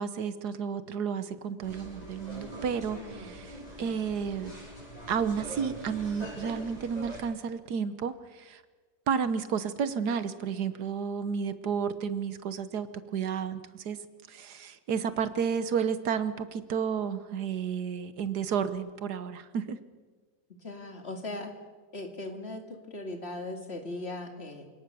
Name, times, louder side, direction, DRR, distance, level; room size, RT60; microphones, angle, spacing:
voice 1, 0.0-4.5 5.1-8.6 9.1-14.0 14.3-19.8, right 7 dB, 75° right, 12 dB, 1.6 m, -32 dB
sound 1, 1.6-7.2, right 2 dB, 25° right, 8.0 m, -43 dB
voice 2, 2.9-3.3 3.8-4.0 20.6-21.5 21.9-24.7, left 2 dB, 40° left, 4 dB, 2.8 m, -39 dB
27.0 x 18.5 x 6.9 m, 1.4 s
omnidirectional pair, 1.7 m